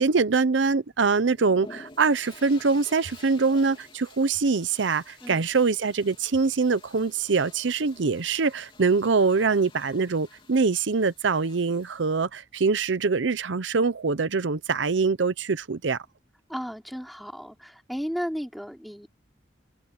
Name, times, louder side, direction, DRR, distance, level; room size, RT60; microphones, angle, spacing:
voice 1, 0.0-16.0, right 4 dB, 90° right, 0.7 m, -24 dB
sound 1, 1.2-12.2, left 3 dB, 30° left, 3.3 m, -51 dB
voice 2, 16.5-19.1, equal, ahead, 4.5 m, -34 dB
head